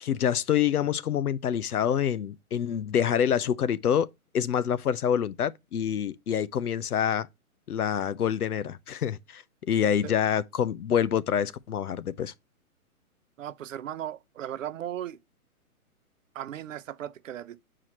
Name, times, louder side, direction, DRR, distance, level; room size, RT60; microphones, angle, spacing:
voice 1, 0.0-4.1 4.3-7.3 7.7-12.3, left 9 dB, 90° left, 0.7 m, -26 dB
voice 2, 13.4-15.2 16.3-17.6, right 11 dB, 60° right, 0.7 m, -37 dB
7.3 x 4.8 x 2.9 m
hypercardioid pair, 145°, 44 cm